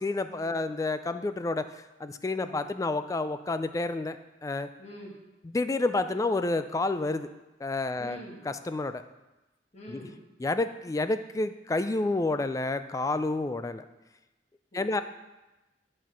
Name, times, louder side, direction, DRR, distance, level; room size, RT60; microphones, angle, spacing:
voice 1, 0.0-4.2 4.4-4.7 5.5-7.3 7.6-8.2 8.5-9.0 9.9-10.1 10.4-13.8 14.7-15.0, left 2 dB, 20° left, 11 dB, 0.3 m, -29 dB
voice 2, 4.8-5.1 8.0-8.4 9.7-10.2 14.7-15.0, equal, 35° left, -3 dB, 1.7 m, -45 dB
10.5 x 4.3 x 6.1 m, 1.1 s
head